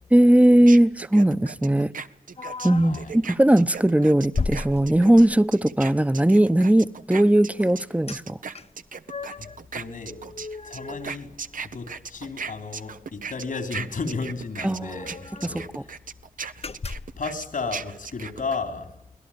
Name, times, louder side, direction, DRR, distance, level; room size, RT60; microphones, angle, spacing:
voice 1, 0.1-1.9 2.6-8.4 14.6-14.9 15.4-15.5, right 1 dB, 10° right, 0.9 m, -18 dB
sound 1, 0.7-7.8 8.1-18.6, right 5 dB, 80° right, 1.0 m, -37 dB
sound 2, 2.4-3.1 3.6-3.8 4.3-5.5 8.1-8.2 8.5-9.6 10.0-11.8 12.1-12.2 12.6-12.8 13.9-14.0 14.2-14.3 14.7-15.6 16.1-16.2 16.6-17.2, left 4 dB, 50° left, 0.8 m, -35 dB
voice 2, 2.8-3.1 9.4-10.2 10.6-11.3 11.6-15.7 17.2-18.9, left 4 dB, 80° left, 3.5 m, -33 dB
24.5 x 18.0 x 8.7 m
cardioid pair, 50°, 14 cm